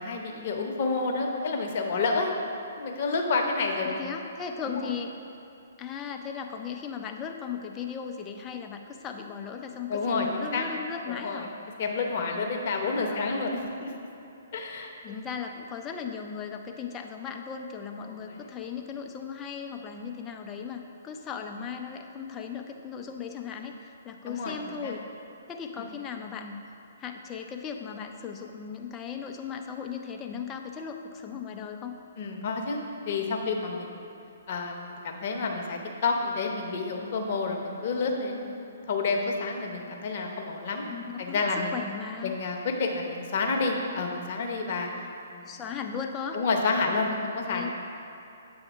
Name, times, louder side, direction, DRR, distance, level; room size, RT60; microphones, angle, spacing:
voice 1, 0.0-2.3 2.7-4.1 4.7-4.9 9.9-10.7 11.1-11.5 11.8-13.9 14.5-14.9 18.0-18.3 24.3-24.5 24.8-24.9 25.8-25.9 32.2-34.1 34.5-40.9 41.2-41.7 42.2-44.9 45.3-45.6 46.3-47.7, left 3 dB, 45° left, 1 dB, 0.8 m, -29 dB
voice 2, 3.8-5.1 5.8-11.5 13.0-13.5 15.0-25.0 25.5-26.6 27.0-32.0 40.9-41.4 41.7-42.3 45.4-46.4 47.4-47.7, left 7 dB, 20° left, 4 dB, 0.5 m, -37 dB
8.0 x 3.5 x 4.6 m, 2.8 s
figure-of-eight pair, 125°, 0 cm